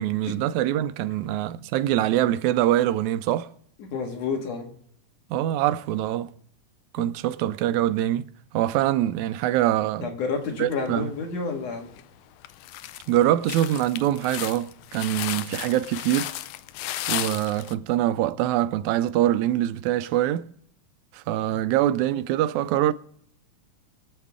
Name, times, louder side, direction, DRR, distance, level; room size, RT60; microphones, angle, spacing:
voice 1, 0.0-3.5 5.3-6.3 6.9-8.2 8.5-10.1 10.6-11.1 13.1-16.3 17.1-20.5 21.1-22.9, right 13 dB, 85° right, 2.0 m, -24 dB
voice 2, 3.8-4.7 7.0-7.1 10.0-11.9 21.3-21.6, left 4 dB, 65° left, 3.0 m, -30 dB
sound 1, 10.9-11.4 11.9-12.0 12.4-17.7, left 14 dB, 80° left, 1.9 m, -34 dB
23.0 x 7.9 x 3.7 m
omnidirectional pair, 3.3 m